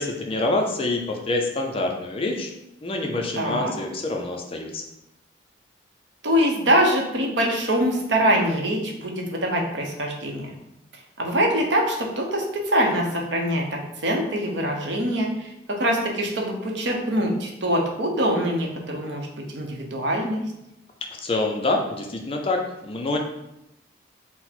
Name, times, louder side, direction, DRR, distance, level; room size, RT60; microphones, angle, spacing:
voice 1, 0.0-2.5 2.8-4.8 21.2-22.6 22.8-23.2, left 2 dB, 30° left, 2 dB, 0.4 m, -26 dB
voice 2, 3.4-3.7 6.2-10.5 10.9-20.4, equal, 65° right, 1 dB, 0.7 m, -24 dB
4.1 x 2.1 x 4.2 m, 0.88 s
head